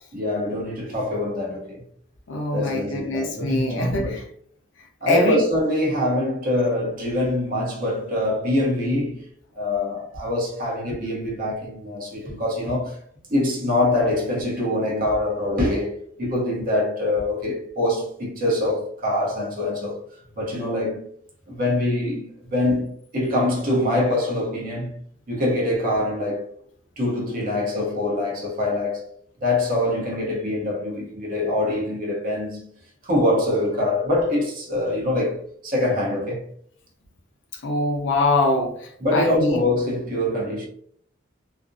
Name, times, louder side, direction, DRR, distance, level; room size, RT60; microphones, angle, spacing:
voice 1, 0.1-1.8 2.5-4.2 5.0-9.3 9.5-13.0 13.3-21.1 21.5-25.0 25.3-26.5 27.0-29.1 29.4-32.7 33.0-36.5 39.0-40.7, left 1 dB, 45° right, 0.7 m, -24 dB
voice 2, 2.3-4.2 5.1-5.4 37.6-39.6, left 2 dB, 65° left, 0.6 m, -23 dB
2.4 x 2.0 x 2.5 m
head